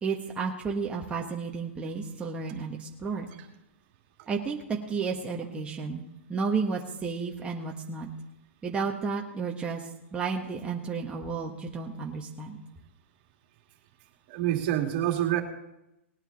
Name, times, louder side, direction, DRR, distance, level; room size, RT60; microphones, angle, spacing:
voice 1, 0.0-3.3 4.3-6.0 6.3-8.1 8.6-12.6, right 5 dB, 15° right, -1 dB, 1.3 m, -32 dB
voice 2, 14.3-15.4, right 12 dB, 50° right, 3 dB, 2.3 m, -27 dB
19.5 x 9.0 x 4.0 m, 0.89 s
hypercardioid pair, 115°, 7 cm